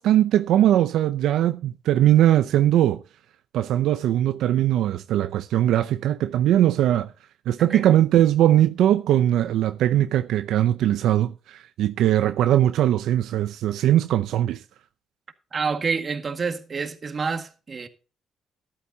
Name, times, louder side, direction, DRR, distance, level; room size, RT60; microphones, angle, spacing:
voice 1, 0.0-3.0 3.5-7.1 7.5-14.6, right 12 dB, 80° right, 0.5 m, -20 dB
voice 2, 15.5-17.9, right 5 dB, 40° right, 1.8 m, -28 dB
13.5 x 11.5 x 2.8 m
cardioid pair, 90°, 0 cm